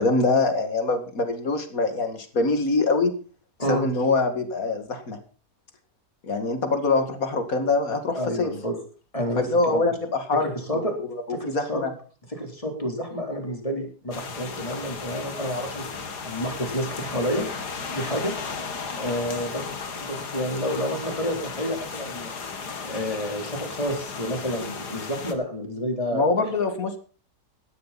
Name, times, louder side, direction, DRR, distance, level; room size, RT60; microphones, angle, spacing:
voice 1, 0.0-3.1 3.7-5.2 6.2-8.5 9.4-10.5 10.7-10.8 11.5-11.9 26.1-27.0, left 3 dB, 60° left, 8 dB, 2.5 m, -24 dB
voice 2, 8.1-8.8 9.1-9.4 9.7-9.8 10.4-10.9 11.3-11.8 12.3-15.9 16.2-17.4 17.9-18.3 19.0-19.7 20.0-26.5, equal, 20° left, 3 dB, 3.9 m, -29 dB
sound 1, 14.1-25.3, left 5 dB, 80° left, 2.4 m, -35 dB
17.5 x 12.5 x 4.2 m, 0.38 s
omnidirectional pair, 1.7 m